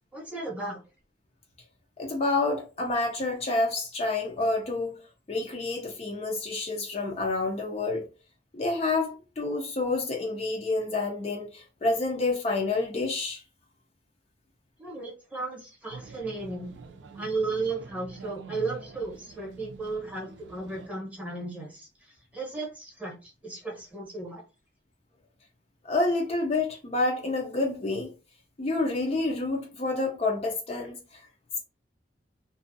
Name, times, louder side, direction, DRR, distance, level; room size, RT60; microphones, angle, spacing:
voice 1, 0.1-0.8 14.8-16.7 17.1-24.4, right 3 dB, 10° right, 0.8 m, -35 dB
voice 2, 2.0-5.0 5.3-8.0 8.5-13.4 25.8-28.1 28.6-31.2, left 2 dB, 35° left, 0.5 m, -28 dB
sound 1, 15.9-20.9, right 4 dB, 85° right, 0.4 m, -46 dB
2.5 x 2.3 x 2.6 m
head